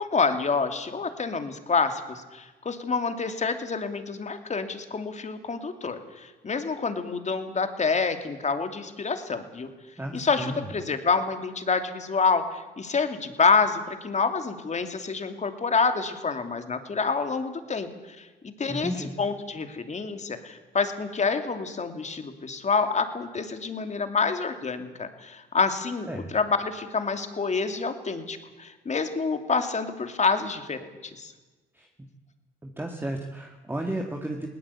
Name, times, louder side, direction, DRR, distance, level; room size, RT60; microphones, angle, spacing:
voice 1, 0.0-9.7 10.1-31.3, left 4 dB, 35° left, 7 dB, 2.7 m, -27 dB
voice 2, 10.0-10.7 18.7-19.1 26.1-26.3 31.7-31.9 32.6-34.5, right 1 dB, 10° right, 2 dB, 2.1 m, -33 dB
20.5 x 18.5 x 8.5 m, 1.2 s
cardioid pair, 90°, 20 cm